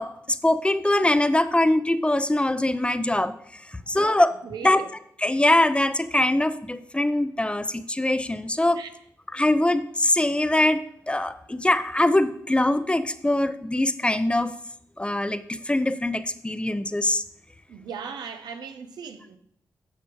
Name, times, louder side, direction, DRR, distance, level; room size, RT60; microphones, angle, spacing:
voice 1, 0.0-4.3 4.6-4.8 5.2-8.8 9.3-14.5 15.0-17.2, left 1 dB, 15° left, 0.7 m, -23 dB
voice 2, 4.4-4.9 8.8-8.9 17.7-19.4, right 6 dB, 85° right, 0.8 m, -38 dB
9.0 x 6.1 x 4.8 m
cardioid pair, 50°, 7 cm